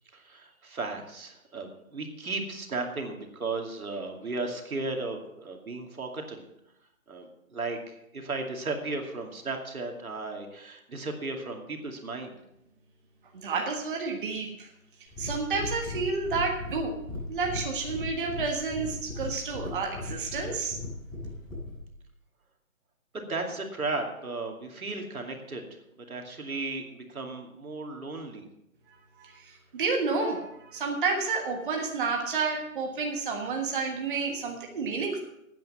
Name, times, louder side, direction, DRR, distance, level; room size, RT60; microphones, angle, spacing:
voice 1, 0.1-6.4 7.1-12.3 23.1-25.6 26.1-28.5, right 3 dB, 85° right, 3 dB, 2.6 m, -35 dB
voice 2, 13.3-14.7 15.2-17.0 17.3-20.8 29.2-35.2, right 4 dB, 35° right, 2 dB, 1.5 m, -30 dB
sound 1, 15.1-21.8, left 2 dB, 10° left, 5.9 m, -37 dB
12.5 x 9.2 x 5.7 m, 0.82 s
hypercardioid pair, 160°, 42 cm